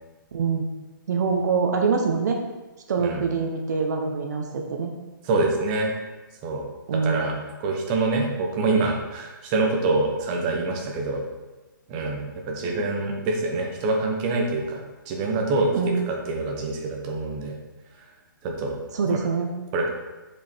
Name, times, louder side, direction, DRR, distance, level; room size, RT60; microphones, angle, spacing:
voice 1, 0.3-0.6 1.1-2.4 2.9-4.9 6.9-7.4 15.7-15.9 18.9-19.5, right 5 dB, 50° right, 2 dB, 1.0 m, -24 dB
voice 2, 5.2-5.9 6.4-6.6 6.9-7.3 7.6-11.2 11.9-15.7 16.1-17.5 18.4-18.8 19.1-19.2 19.7-19.9, right 3 dB, 20° right, 1 dB, 1.0 m, -25 dB
6.7 x 5.2 x 4.5 m, 1.1 s
hypercardioid pair, 165°, 11 cm